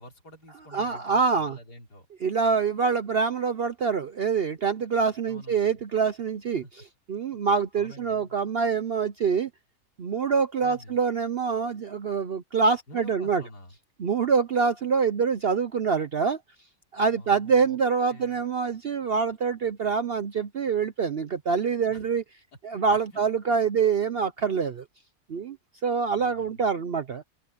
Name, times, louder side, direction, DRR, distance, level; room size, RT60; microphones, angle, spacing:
voice 1, 0.0-2.1 5.3-5.8 6.6-6.8 7.7-8.3 10.6-11.0 12.9-13.7 17.1-17.8 18.1-18.4 21.9-22.1 23.1-23.8 26.2-26.6, left 1 dB, 80° left, 4.6 m, -48 dB
voice 2, 0.7-1.6 2.2-6.6 7.1-9.5 10.0-13.4 14.0-16.4 16.9-22.2 22.6-24.8 25.3-25.6 25.8-27.2, right 5 dB, 55° right, 0.7 m, -25 dB
open air
omnidirectional pair, 1.7 m